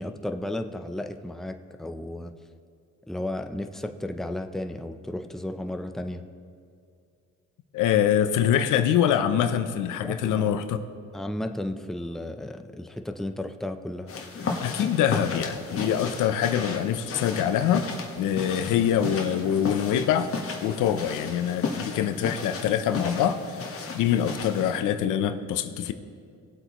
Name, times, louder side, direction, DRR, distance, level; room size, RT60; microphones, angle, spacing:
voice 1, 0.0-2.3 3.1-6.2 10.0-10.5 11.1-14.1, left 1 dB, ahead, 6 dB, 0.6 m, -34 dB
voice 2, 7.7-10.9 14.6-17.9 18.2-20.3 20.6-25.9, left 9 dB, 90° left, 9 dB, 0.7 m, -24 dB
sound 1, 14.1-24.8, left 4 dB, 50° left, 1.4 m, -34 dB
19.5 x 8.0 x 3.0 m, 2.3 s
cardioid pair, 90°, 30 cm